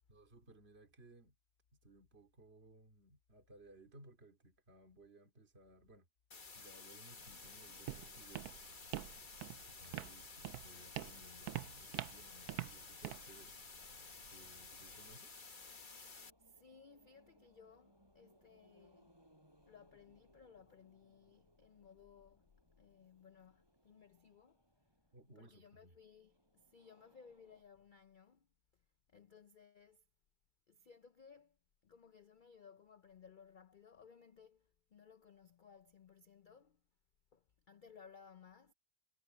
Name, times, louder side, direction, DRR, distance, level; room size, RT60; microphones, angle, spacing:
voice 1, 0.1-1.3 1.8-6.1 6.5-8.5 9.7-13.6 14.3-15.4 25.1-25.9, right 2 dB, 40° right, 2.9 m, -61 dB
sound 1, 6.3-16.3, left 4 dB, 35° left, 1.4 m, -53 dB
Walk footsteps, 7.2-15.2, right 15 dB, 85° right, 1.1 m, -47 dB
Subway metro underground, 10.6-27.6, right 1 dB, 15° right, 5.3 m, -72 dB
voice 2, 16.4-19.2 19.7-22.5 22.8-24.9 25.4-28.8 29.1-30.0 30.7-31.6 31.8-36.8 37.3-38.7, left 6 dB, 75° left, 0.4 m, -61 dB
omnidirectional pair, 1.6 m